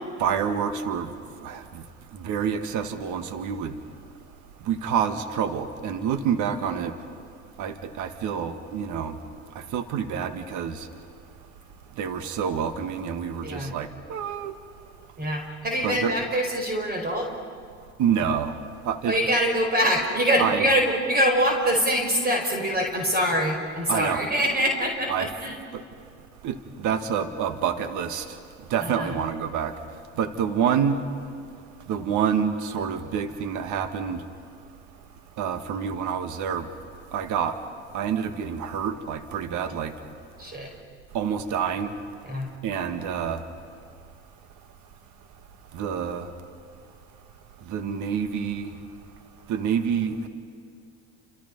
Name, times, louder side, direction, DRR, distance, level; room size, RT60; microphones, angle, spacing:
voice 1, 0.2-1.1 1.4-1.8 2.1-3.8 4.6-6.9 7.6-9.2 9.5-10.9 12.0-14.5 15.8-16.1 18.0-18.6 18.8-19.2 20.4-20.6 23.9-24.2 25.1-25.3 25.7-25.8 26.4-28.4 28.7-29.7 30.2-31.0 31.9-34.2 35.4-36.7 37.1-37.6 37.9-39.9 41.1-42.0 42.6-43.5 45.7-46.3 47.7-48.8 49.5-50.3, right 7 dB, 60° right, 8 dB, 2.0 m, -27 dB
voice 2, 13.4-13.7 15.2-17.3 19.1-25.6 28.8-29.1 40.4-40.7 42.2-42.5, equal, 25° right, 2 dB, 5.0 m, -24 dB
30.0 x 27.0 x 5.5 m, 2.3 s
hypercardioid pair, 70°, 34 cm